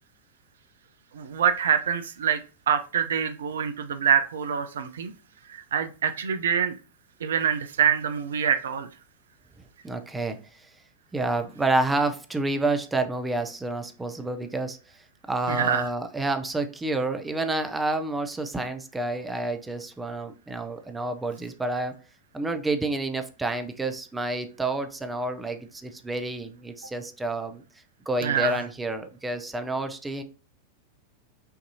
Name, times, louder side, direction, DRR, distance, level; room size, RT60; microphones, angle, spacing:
voice 1, 1.1-2.4 2.7-5.1 5.5-6.7 7.2-8.9 15.5-15.9 28.2-28.6, right 8 dB, 65° right, 9 dB, 0.4 m, -25 dB
voice 2, 9.8-10.7 11.1-22.0 22.3-27.6 28.1-30.2, right 2 dB, 10° right, 7 dB, 0.5 m, -29 dB
5.7 x 2.6 x 2.7 m, 0.35 s
figure-of-eight pair, 90°, 0 cm